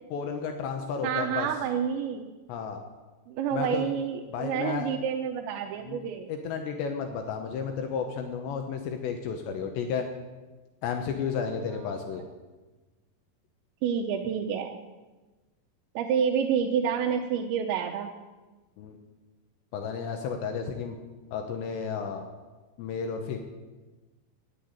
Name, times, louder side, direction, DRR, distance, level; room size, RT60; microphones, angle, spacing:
voice 1, 0.1-1.5 2.5-2.8 3.5-3.9 4.3-4.9 5.9-6.0 6.3-10.1 10.8-12.3 18.8-19.0 19.7-21.0 21.3-22.3 22.8-23.4, left 6 dB, 80° left, 5 dB, 3.1 m, -32 dB
voice 2, 1.0-2.3 3.3-6.3 13.8-14.7 16.0-18.1, right 7 dB, 85° right, 3 dB, 3.0 m, -28 dB
10.5 x 9.9 x 8.9 m, 1.2 s
omnidirectional pair, 5.3 m